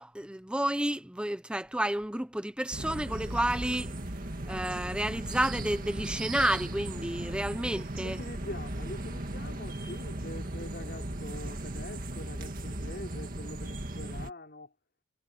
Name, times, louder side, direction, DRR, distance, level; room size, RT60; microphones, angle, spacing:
voice 1, 0.0-4.0 4.5-8.2, right 1 dB, 5° right, 0.8 m, -31 dB
sound 1, 2.7-14.3, right 1 dB, 40° right, 2.1 m, -37 dB
voice 2, 8.0-14.7, left 1 dB, 45° left, 4.6 m, -44 dB
head